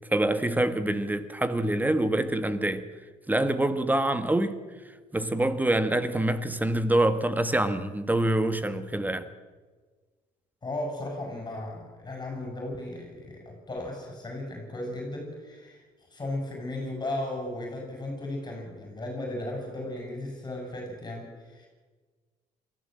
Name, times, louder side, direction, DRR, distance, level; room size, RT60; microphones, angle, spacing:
voice 1, 0.0-2.9 3.3-4.6 5.1-9.3, right 1 dB, 10° right, 1.5 m, -25 dB
voice 2, 10.6-15.8 16.1-21.7, left 1 dB, 25° left, 6.9 m, -35 dB
23.0 x 15.0 x 7.8 m
supercardioid pair, 85°, 16 cm